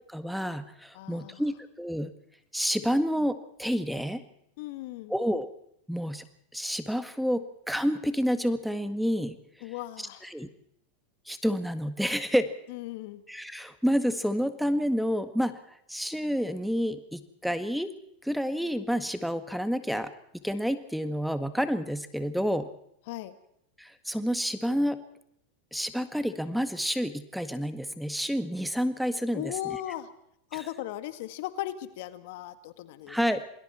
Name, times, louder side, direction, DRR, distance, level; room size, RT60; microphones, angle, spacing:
voice 1, 0.1-2.1 2.5-4.2 5.1-5.5 5.9-6.2 6.5-9.4 10.2-10.5 11.3-12.5 13.3-17.9 18.2-20.1 20.4-22.7 23.8-25.0 25.7-29.5 30.5-30.6 33.1-33.4, equal, ahead, 10 dB, 1.7 m, -29 dB
voice 2, 0.9-1.4 4.6-5.1 9.6-10.3 12.7-13.2 23.1-23.3 29.3-30.1 30.5-33.2, left 14 dB, 65° left, 11 dB, 1.8 m, -37 dB
28.0 x 21.0 x 4.5 m, 0.72 s
hypercardioid pair, 105°, 0 cm